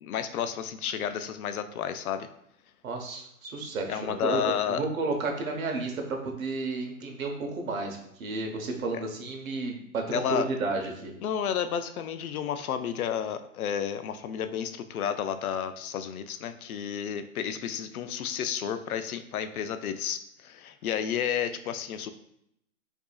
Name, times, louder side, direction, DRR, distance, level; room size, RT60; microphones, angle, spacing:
voice 1, 0.0-2.3 3.9-4.9 10.1-10.5 11.2-22.1, left 8 dB, 75° left, 10 dB, 0.5 m, -31 dB
voice 2, 2.8-11.1, right 3 dB, 70° right, 2 dB, 1.0 m, -32 dB
4.7 x 2.7 x 2.3 m, 0.76 s
hypercardioid pair, 175°, 43 cm